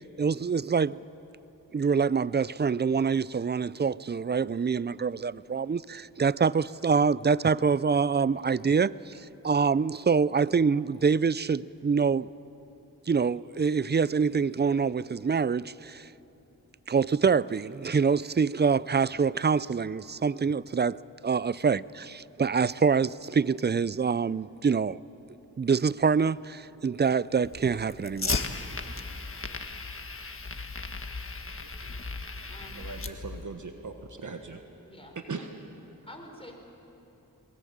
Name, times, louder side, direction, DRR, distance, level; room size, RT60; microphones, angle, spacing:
voice 1, 0.2-1.0 1.7-12.3 13.1-16.1 16.9-25.0 25.6-28.5, right 5 dB, 30° right, 0.5 m, -25 dB
Fire, 27.4-33.4, left 4 dB, 40° left, 1.5 m, -36 dB
voice 2, 32.7-34.6 35.1-35.5, right 4 dB, 60° right, 1.5 m, -39 dB
voice 3, 34.9-35.2 36.0-36.6, left 1 dB, 15° left, 5.3 m, -47 dB
23.0 x 20.5 x 8.7 m
cardioid pair, 50°, 34 cm